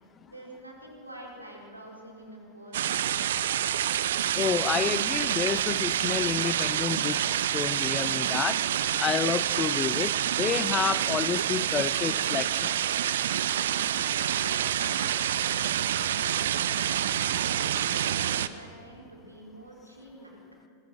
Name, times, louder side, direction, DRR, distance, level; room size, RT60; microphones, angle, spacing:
voice 1, 0.3-3.7 14.2-16.8 17.3-20.4, right 1 dB, 85° right, 4.5 m, -46 dB
sound 1, 2.7-18.5, right 10 dB, 60° right, 0.7 m, -27 dB
voice 2, 4.3-8.6 9.0-12.7, left 7 dB, 25° left, 0.5 m, -30 dB
25.5 x 21.5 x 6.2 m
figure-of-eight pair, 90°, 0 cm